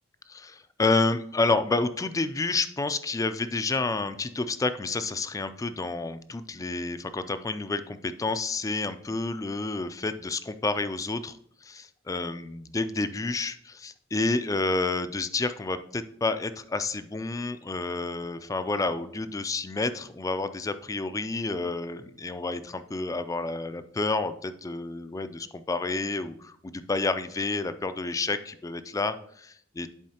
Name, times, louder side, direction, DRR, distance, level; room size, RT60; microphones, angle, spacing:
voice 1, 0.3-29.9, left 3 dB, 15° left, 11 dB, 0.3 m, -29 dB
10.5 x 4.6 x 2.8 m, 0.67 s
head